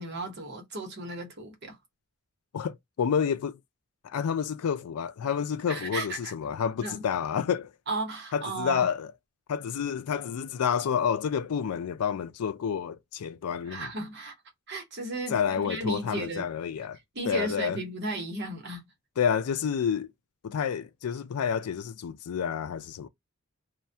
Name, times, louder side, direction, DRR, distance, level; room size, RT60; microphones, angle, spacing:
voice 1, 0.0-1.8 5.7-6.3 6.8-7.0 7.9-8.9 13.7-14.3 14.7-16.5 17.1-18.8, right 2 dB, 50° right, 0.9 m, -34 dB
voice 2, 2.5-3.6 4.0-7.7 8.3-9.1 9.5-13.9 15.3-17.0 17.2-17.8 19.2-20.1 20.4-23.1, left 7 dB, 85° left, 0.4 m, -29 dB
2.2 x 2.2 x 2.6 m
head